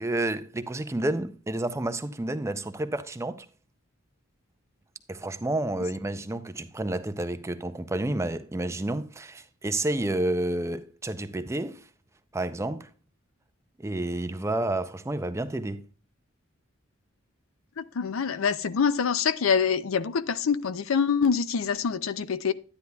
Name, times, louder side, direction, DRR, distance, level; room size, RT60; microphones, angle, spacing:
voice 1, 0.0-3.5 5.1-11.8 12.3-12.9 13.8-15.8, right 1 dB, 15° right, 0.5 m, -30 dB
voice 2, 17.8-22.5, left 6 dB, 90° left, 0.5 m, -25 dB
10.5 x 9.8 x 2.3 m
head